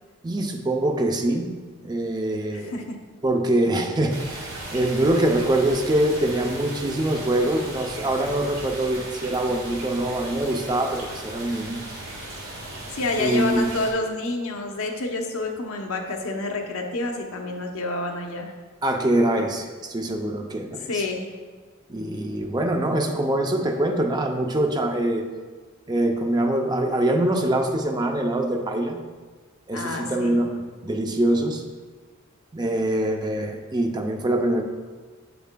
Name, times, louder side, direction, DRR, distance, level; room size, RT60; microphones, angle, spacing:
voice 1, 0.2-1.5 1.8-2.7 3.2-11.8 13.2-13.7 18.8-21.0 21.9-25.2 25.9-29.0 29.7-31.6 32.5-34.6, right 1 dB, 20° right, 4 dB, 0.4 m, -24 dB
voice 2, 2.5-3.0 12.9-18.5 20.9-21.3 29.7-30.4, left 2 dB, 75° left, 2 dB, 0.8 m, -28 dB
sound 1, 4.1-13.9, right 1 dB, 70° right, 1.7 m, -37 dB
8.3 x 6.8 x 2.2 m, 1.5 s
head